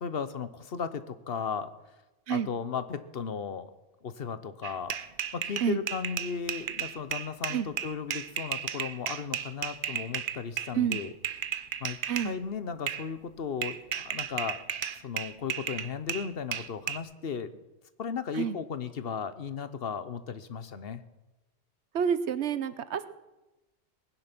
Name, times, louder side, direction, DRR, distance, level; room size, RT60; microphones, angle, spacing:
voice 1, 0.0-1.7 2.3-3.7 4.0-5.0 5.3-11.1 11.8-14.6 15.0-17.5 18.0-21.0, left 6 dB, 60° left, 12 dB, 1.1 m, -35 dB
sound 1, 4.6-12.3 12.9-13.1 13.6-17.0, right 8 dB, 55° right, 0.8 m, -34 dB
voice 2, 21.9-23.1, right 8 dB, 75° right, 13 dB, 1.1 m, -28 dB
19.5 x 10.0 x 6.0 m, 1.1 s
omnidirectional pair, 1.1 m